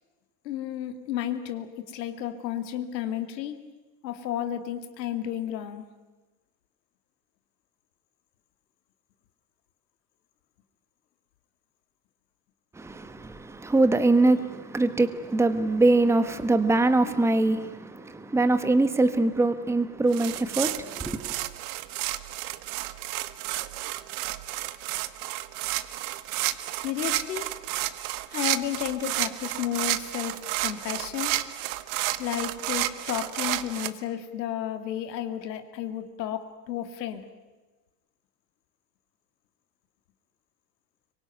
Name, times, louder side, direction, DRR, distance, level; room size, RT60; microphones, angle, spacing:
voice 1, 0.4-3.5 4.0-5.8 26.7-27.5 28.3-31.3 32.2-37.3, left 11 dB, 85° left, 2.7 m, -32 dB
voice 2, 12.7-21.3, right 2 dB, 5° right, 1.3 m, -23 dB
sound 1, 20.1-33.9, right 16 dB, 60° right, 1.5 m, -31 dB
25.5 x 24.0 x 9.3 m
supercardioid pair, 130°, 49 cm